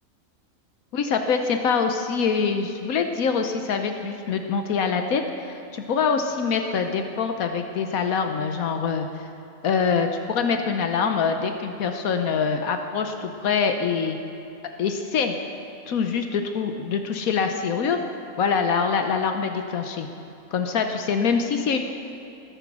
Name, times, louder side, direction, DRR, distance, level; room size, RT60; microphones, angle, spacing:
voice 1, 0.9-9.2 9.6-14.2 14.8-15.4 15.9-18.0 18.4-20.1 20.5-21.8, left 5 dB, 75° left, 6 dB, 1.3 m, -24 dB
20.5 x 10.0 x 6.0 m, 2.7 s
omnidirectional pair, 1.5 m